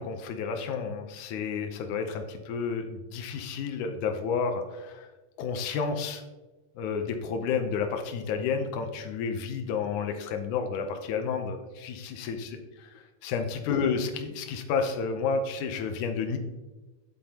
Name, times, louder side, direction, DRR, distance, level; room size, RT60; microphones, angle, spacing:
voice 1, 0.0-5.1 5.4-6.2 6.8-12.6 13.2-16.4, left 5 dB, 85° left, 5 dB, 2.3 m, -31 dB
9.9 x 8.7 x 2.9 m, 1.2 s
omnidirectional pair, 3.4 m